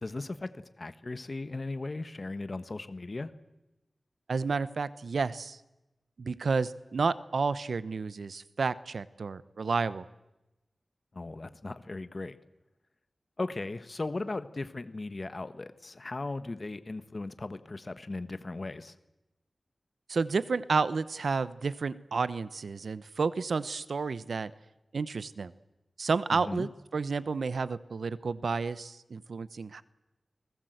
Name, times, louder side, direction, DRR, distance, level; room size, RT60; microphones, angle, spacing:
voice 1, 0.0-3.3 11.1-12.4 13.4-19.0 26.3-26.7, left 2 dB, 45° left, 12 dB, 1.4 m, -37 dB
voice 2, 4.3-5.6 6.2-10.0 20.1-24.5 24.9-25.5 26.0-29.8, right 4 dB, 85° right, 16 dB, 0.9 m, -31 dB
29.5 x 19.5 x 8.0 m, 0.97 s
wide cardioid pair, 65°, 0 cm